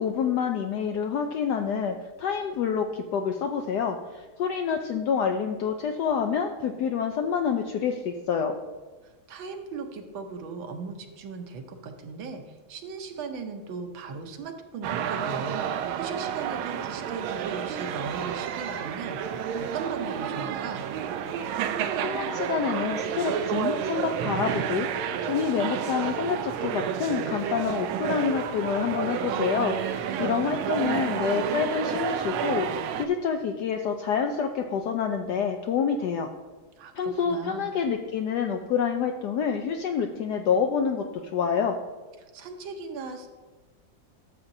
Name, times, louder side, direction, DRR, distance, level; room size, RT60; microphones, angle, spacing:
voice 1, 0.0-8.5 22.0-36.3 37.0-41.0 41.3-41.8, left 6 dB, 75° left, 5 dB, 0.9 m, -27 dB
voice 2, 9.0-20.9 36.8-37.7 42.3-43.3, right 5 dB, 75° right, 5 dB, 1.5 m, -38 dB
sound 1, 14.8-33.1, right 8 dB, 90° right, 1.4 m, -30 dB
12.5 x 7.2 x 2.6 m, 1.3 s
omnidirectional pair, 2.2 m